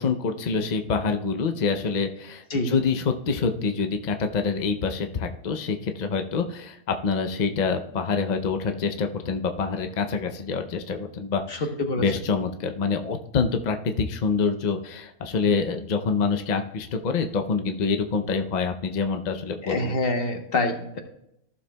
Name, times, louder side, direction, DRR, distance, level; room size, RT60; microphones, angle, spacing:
voice 1, 0.0-11.7 12.0-19.9, left 5 dB, 60° left, 6 dB, 0.4 m, -26 dB
voice 2, 19.6-21.0, left 2 dB, 45° left, 5 dB, 1.2 m, -26 dB
14.5 x 7.0 x 2.2 m, 0.78 s
omnidirectional pair, 1.5 m